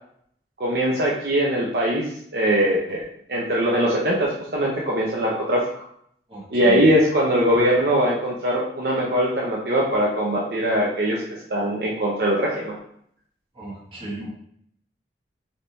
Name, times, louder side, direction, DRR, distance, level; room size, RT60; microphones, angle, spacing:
voice 1, 0.6-2.1 2.3-3.0 3.3-5.7 6.5-12.8, equal, 60° right, -3 dB, 0.6 m, -21 dB
voice 2, 6.3-6.8 13.6-14.3, right 2 dB, 30° right, -5 dB, 1.2 m, -34 dB
3.5 x 2.8 x 3.9 m, 0.67 s
head